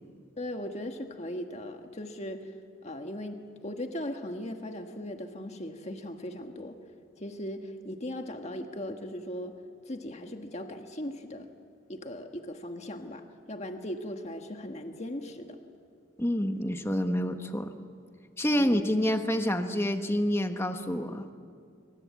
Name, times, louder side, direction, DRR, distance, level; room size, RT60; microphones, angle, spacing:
voice 1, 0.4-2.5 2.8-6.8 7.2-9.6 9.8-11.5 11.9-15.6 18.5-18.9, left 1 dB, 35° left, 5 dB, 1.6 m, -38 dB
voice 2, 16.2-17.7 18.4-21.3, equal, 15° left, 6 dB, 1.3 m, -28 dB
25.5 x 25.0 x 8.4 m, 2.3 s
head